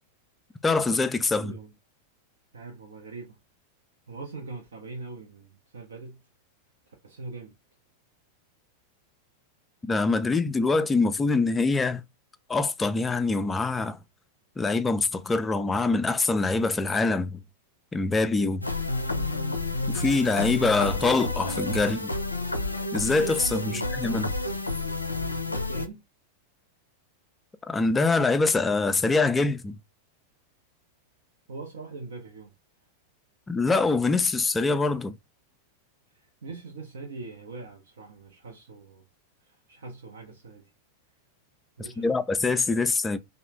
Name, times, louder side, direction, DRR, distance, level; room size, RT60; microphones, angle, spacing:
voice 1, 0.6-1.5 9.8-12.0 12.5-14.0 14.6-17.4 17.9-18.6 19.9-22.1 22.9-24.3 27.7-29.7 33.5-35.1 42.0-43.2, left 3 dB, 15° left, 0.3 m, -24 dB
voice 2, 1.3-1.7 2.5-3.4 4.1-6.2 6.9-7.5 23.6-23.9 25.4-26.0 31.5-32.5 36.1-39.0 39.4-40.7 41.8-42.2, right 3 dB, 65° right, 0.6 m, -42 dB
sound 1, 18.6-25.9, left 2 dB, 85° left, 0.4 m, -30 dB
3.1 x 2.1 x 3.0 m
figure-of-eight pair, 90°, 0 cm